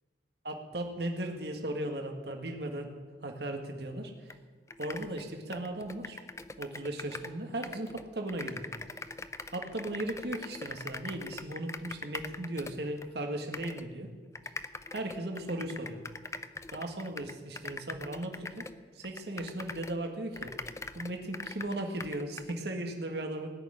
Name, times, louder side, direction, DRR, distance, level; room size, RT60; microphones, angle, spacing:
voice 1, 0.4-2.9 3.2-4.1 4.8-6.2 6.6-8.7 9.5-14.1 14.9-16.0 16.7-18.6 19.0-20.5 20.9-23.5, right 1 dB, 70° right, 3 dB, 1.8 m, -37 dB
sound 1, 4.3-4.4 4.7-7.4 7.6-13.1 13.5-13.9 14.3-20.0 20.3-22.6, left 3 dB, 15° left, 0.5 m, -42 dB
18.5 x 6.6 x 10.0 m, 1.5 s
head